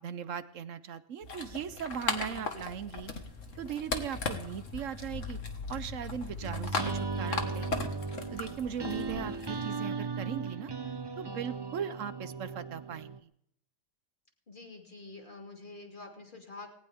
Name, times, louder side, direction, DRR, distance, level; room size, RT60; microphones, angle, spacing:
voice 1, 0.0-3.1 3.6-5.4 5.7-7.9 8.3-10.7 11.2-13.3, right 8 dB, 65° right, 14 dB, 1.1 m, -39 dB
sound 1, 1.2-9.7, left 4 dB, 65° left, 2.1 m, -38 dB
voice 2, 2.1-2.5 8.6-9.2 14.5-16.7, left 3 dB, 35° left, 2 dB, 2.9 m, -47 dB
sound 2, 6.4-13.2, right 4 dB, 25° right, 0.5 m, -37 dB
19.5 x 18.5 x 3.6 m, 0.71 s
omnidirectional pair, 1.5 m